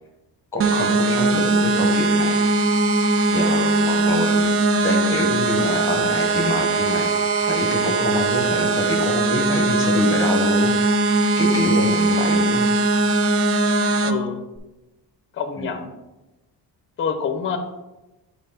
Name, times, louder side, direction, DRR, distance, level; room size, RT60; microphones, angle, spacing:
voice 1, 0.5-2.4 2.7-4.5 4.8-11.0 11.4-12.6 15.6-15.7, left 2 dB, 10° left, 2 dB, 1.0 m, -26 dB
sound 1, 0.6-14.1, right 2 dB, 35° right, 0.4 m, -20 dB
voice 2, 14.0-14.4 15.4-15.9 17.0-17.6, left 6 dB, 30° left, 7 dB, 0.6 m, -26 dB
5.6 x 4.0 x 5.6 m, 1.0 s
cardioid pair, 165°, 40 cm